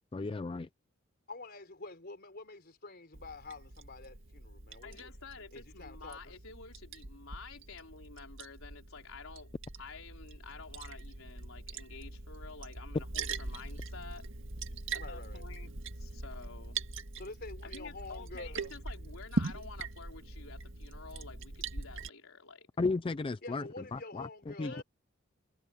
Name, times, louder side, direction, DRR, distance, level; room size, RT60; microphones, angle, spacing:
voice 1, 0.1-0.7 22.8-23.6 23.9-24.7, left 3 dB, 25° left, 0.4 m, -34 dB
voice 2, 1.3-5.1 5.5-6.3 15.0-15.5 17.1-18.7 23.4-24.8, left 3 dB, 45° left, 4.3 m, -47 dB
Liquid, 3.1-22.1, right 3 dB, 60° right, 1.9 m, -42 dB
voice 3, 4.8-9.5 9.8-14.3 14.9-15.7 16.0-16.8 17.6-22.7 24.6-24.8, left 4 dB, 75° left, 4.2 m, -50 dB
head